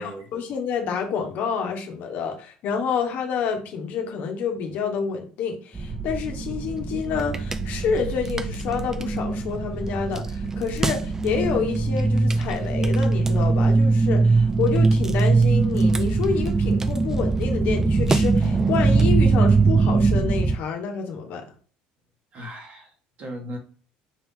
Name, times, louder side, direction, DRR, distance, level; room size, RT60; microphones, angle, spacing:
voice 1, 0.0-21.4, left 6 dB, 60° left, 1.2 m, -28 dB
sound 1, 5.7-20.6, right 3 dB, 15° right, 0.3 m, -21 dB
voice 2, 22.3-23.6, equal, 45° right, 1.7 m, -37 dB
4.7 x 2.9 x 3.7 m
cardioid pair, 120°, 3 cm